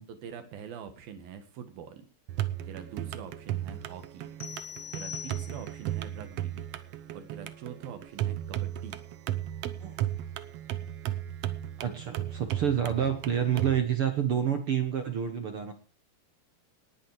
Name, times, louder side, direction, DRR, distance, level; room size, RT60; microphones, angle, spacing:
voice 1, 0.1-2.1 2.7-4.3 4.9-6.6 7.1-9.0, right 7 dB, 75° right, 9 dB, 3.3 m, -44 dB
sound 1, 2.3-13.8, right 12 dB, 90° right, 1.3 m, -35 dB
sound 2, 4.4-5.9, left 10 dB, 75° left, 3.4 m, -42 dB
voice 2, 11.8-15.7, right 9 dB, 60° right, 8 dB, 1.5 m, -28 dB
19.0 x 10.0 x 4.9 m, 0.34 s
omnidirectional pair, 4.3 m